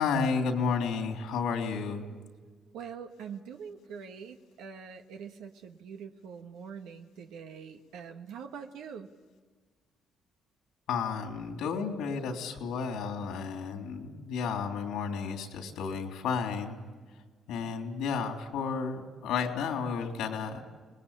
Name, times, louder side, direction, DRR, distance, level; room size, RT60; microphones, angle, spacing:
voice 1, 0.0-2.0 10.9-16.8 17.5-20.6, left 5 dB, 90° left, 4 dB, 3.4 m, -32 dB
voice 2, 2.7-9.1, right 6 dB, 90° right, 5 dB, 1.4 m, -44 dB
26.5 x 20.0 x 8.6 m, 1.5 s
cardioid pair, 90°, 0 cm